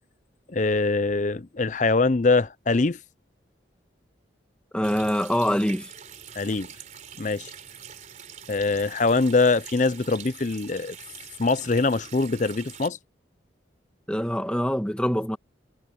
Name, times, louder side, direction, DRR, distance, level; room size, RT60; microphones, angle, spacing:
voice 1, 0.5-3.0 6.4-6.7 7.2-7.5 8.5-11.0 11.4-13.0, left 3 dB, 40° left, 0.6 m, -23 dB
voice 2, 4.7-5.9 14.1-15.4, equal, 5° left, 2.0 m, -24 dB
Water tap faucet, 4.8-12.9, right 8 dB, 40° right, 3.9 m, -44 dB
head